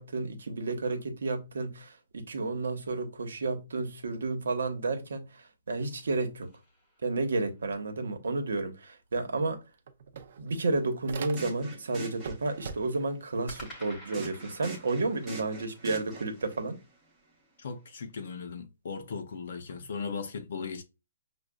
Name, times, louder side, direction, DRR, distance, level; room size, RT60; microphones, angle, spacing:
voice 1, 0.0-6.5 7.0-9.6 10.4-16.8, right 3 dB, 90° right, 1.0 m, -31 dB
sound 1, 5.8-7.7 13.5-17.7, equal, 10° left, 1.1 m, -52 dB
sound 2, 9.1-9.2 9.5-11.8 12.1-13.2, right 6 dB, 45° right, 0.5 m, -43 dB
sound 3, 11.2-12.9 14.1-16.6, right 2 dB, 10° right, 0.7 m, -44 dB
voice 2, 17.6-20.8, left 5 dB, 50° left, 0.6 m, -37 dB
6.1 x 2.3 x 2.2 m
hypercardioid pair, 175°, 0 cm